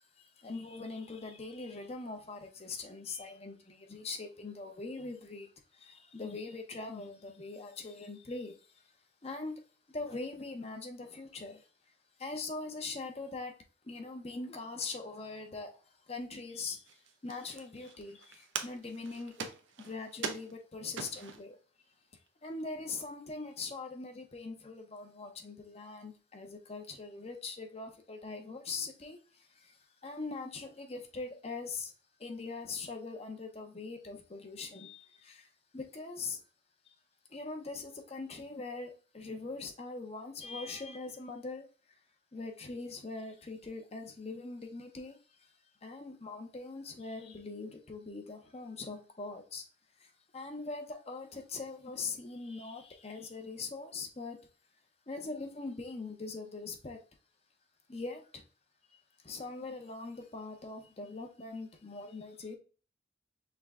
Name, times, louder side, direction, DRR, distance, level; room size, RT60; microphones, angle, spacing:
voice 1, 0.2-8.5 9.2-9.6 9.9-11.6 12.2-13.5 13.8-15.8 16.1-19.5 19.8-21.6 22.4-29.8 30.0-31.9 32.2-35.5 35.7-36.4 36.9-37.0 37.3-41.7 42.3-45.2 45.8-49.6 50.0-54.4 55.1-57.0 57.9-58.4 59.2-62.6, left 3 dB, 35° left, 0.7 m, -42 dB
sound 1, 16.8-21.5 22.2-22.3 22.5-23.0, right 6 dB, 80° right, 0.6 m, -43 dB
5.8 x 2.2 x 3.5 m
head